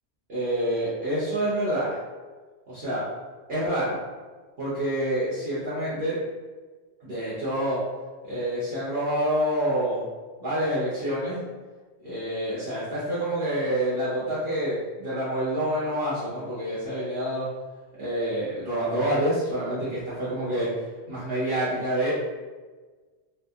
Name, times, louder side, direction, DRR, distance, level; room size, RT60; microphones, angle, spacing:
voice 1, 0.3-2.0 2.7-3.0 3.5-4.0 4.6-6.2 7.0-7.8 8.2-10.0 10.4-11.4 12.0-17.5 18.0-20.7 21.1-22.1, right 1 dB, 60° right, -10 dB, 1.0 m, -27 dB
2.7 x 2.3 x 2.3 m, 1.4 s
omnidirectional pair, 1.2 m